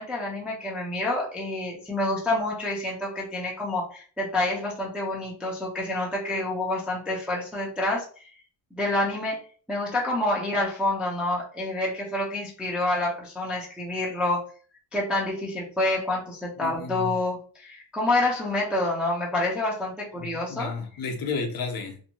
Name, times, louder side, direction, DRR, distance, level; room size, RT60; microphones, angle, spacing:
voice 1, 0.0-8.3 8.7-9.4 9.7-14.5 14.9-20.7, left 2 dB, 5° right, -4 dB, 0.3 m, -28 dB
voice 2, 16.6-17.2 20.2-22.0, left 4 dB, 50° left, 3 dB, 0.6 m, -32 dB
2.5 x 2.1 x 2.8 m, 0.42 s
cardioid pair, 165°, 46 cm